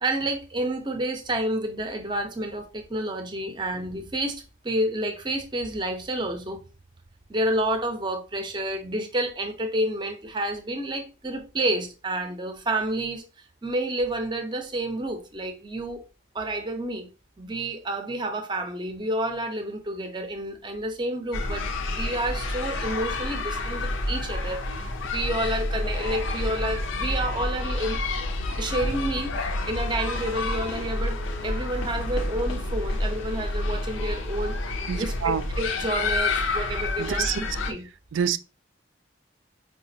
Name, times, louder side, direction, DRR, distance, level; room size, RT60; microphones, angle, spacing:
voice 1, 0.0-6.6 7.3-16.0 16.3-17.1 17.4-24.6 25.0-28.0 28.6-29.3 29.7-31.2 31.4-34.6 34.9-37.9, right 1 dB, 25° right, 0.5 m, -29 dB
sound 1, 21.3-37.7, left 2 dB, 85° left, 0.6 m, -29 dB
voice 2, 34.9-35.5 37.0-37.6 38.1-38.4, right 8 dB, 80° right, 0.3 m, -27 dB
4.9 x 2.3 x 2.7 m
head